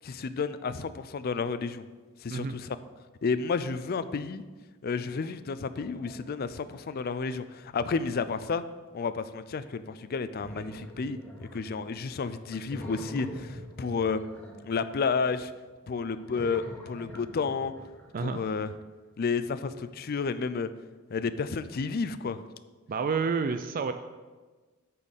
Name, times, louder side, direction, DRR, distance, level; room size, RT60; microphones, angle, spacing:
voice 1, 0.0-1.8 2.2-2.8 3.2-4.4 4.8-8.6 8.9-14.2 14.6-15.5 15.9-17.7 18.2-18.7 19.2-20.7 21.1-22.4, left 5 dB, 45° left, 13 dB, 0.4 m, -31 dB
sound 1, 5.7-7.1 7.6-8.1 10.4-12.1 12.5-15.3 16.1-18.7, equal, 10° left, 1.0 m, -45 dB
voice 2, 22.9-23.9, right 5 dB, 40° right, 9 dB, 0.4 m, -29 dB
8.5 x 4.2 x 7.2 m, 1.3 s
head